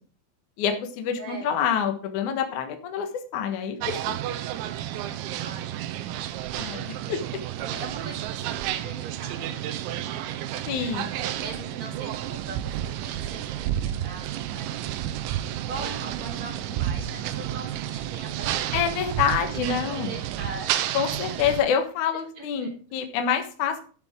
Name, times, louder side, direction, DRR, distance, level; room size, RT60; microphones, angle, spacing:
voice 1, 0.6-3.8 4.1-4.2 6.5-7.2 10.7-11.2 18.7-20.1 20.9-23.9, left 7 dB, 65° left, 5 dB, 2.0 m, -27 dB
voice 2, 1.2-1.6 5.4-7.1 7.6-10.7 11.1-15.1 15.6-18.8 19.5-20.7 22.4-22.7 23.3-23.4, right 3 dB, 30° right, 0 dB, 4.0 m, -41 dB
sound 1, 3.8-21.6, right 12 dB, 80° right, 3.1 m, -31 dB
12.0 x 9.7 x 3.7 m, 0.39 s
omnidirectional pair, 5.4 m